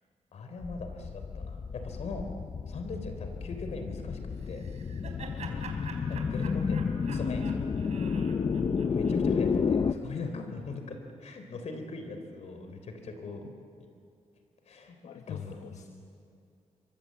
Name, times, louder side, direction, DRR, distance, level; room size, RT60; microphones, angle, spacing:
voice 1, 0.3-2.3 2.7-4.2 4.5-4.6 6.1-7.5 8.9-13.4 14.7-15.0 15.3-15.9, left 3 dB, 70° left, 6 dB, 3.6 m, -40 dB
sound 1, 0.6-9.9, left 5 dB, 40° left, 0.8 m, -31 dB
Laughter, 4.4-9.6, right 5 dB, 75° right, 3.6 m, -47 dB
voice 2, 8.1-8.7 10.3-10.6 13.4-13.6 15.0-15.9, left 7 dB, 85° left, 5 dB, 1.3 m, -44 dB
27.5 x 24.0 x 7.6 m, 2.4 s
wide cardioid pair, 120°, 12 cm